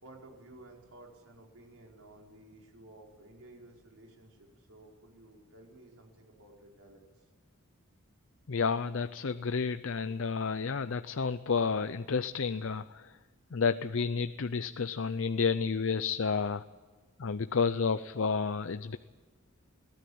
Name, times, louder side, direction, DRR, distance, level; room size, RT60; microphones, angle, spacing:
voice 1, 0.0-7.0, right 2 dB, 90° right, 0 dB, 4.9 m, -54 dB
voice 2, 8.5-13.1 13.5-16.6 17.2-19.0, left 5 dB, 65° left, 12 dB, 0.6 m, -31 dB
23.0 x 16.5 x 8.7 m, 1.4 s
head